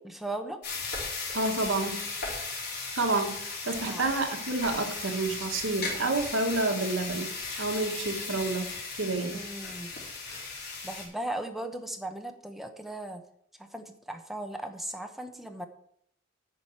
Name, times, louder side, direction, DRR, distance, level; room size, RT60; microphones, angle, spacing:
voice 1, 0.0-0.6 3.8-4.0 9.3-9.9 10.8-13.2 13.6-15.7, right 1 dB, ahead, 5 dB, 1.0 m, -37 dB
sound 1, 0.6-11.0, left 4 dB, 55° left, 3.3 m, -36 dB
voice 2, 1.3-2.0 2.9-7.3 7.6-8.7 8.9-9.4, right 2 dB, 75° right, 5 dB, 1.5 m, -29 dB
10.0 x 4.9 x 7.4 m, 0.70 s
head